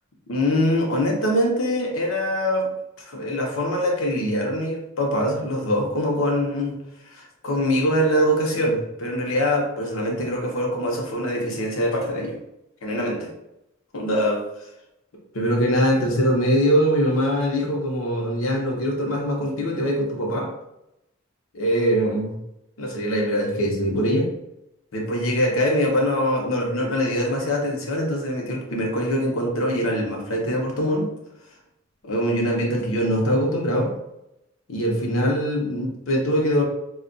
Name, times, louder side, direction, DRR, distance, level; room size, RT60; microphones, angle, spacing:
voice 1, 0.3-2.7 3.1-6.8 7.1-12.4 12.8-13.3 13.9-14.4 15.3-20.5 21.5-22.4 22.8-24.3 24.9-31.1 32.0-33.9 34.7-36.6, equal, 80° left, 0 dB, 0.8 m, -23 dB
2.4 x 2.3 x 3.8 m, 0.86 s
head